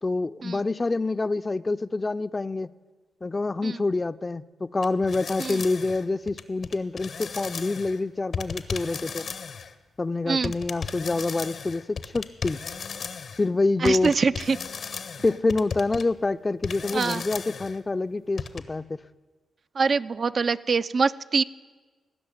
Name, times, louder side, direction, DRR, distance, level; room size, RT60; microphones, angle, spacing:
voice 1, 0.0-2.7 3.2-9.2 10.0-12.6 13.4-14.2 15.2-19.0, left 3 dB, 35° left, 0.4 m, -27 dB
sound 1, 4.8-8.0 8.3-9.7 10.4-13.5 13.9-16.0 16.6-17.8 18.4-18.6, left 5 dB, 65° left, 0.7 m, -35 dB
voice 2, 13.8-14.6 16.9-17.2 19.8-21.4, right 4 dB, 55° right, 0.3 m, -24 dB
16.0 x 6.2 x 8.9 m
hypercardioid pair, 40°, 0 cm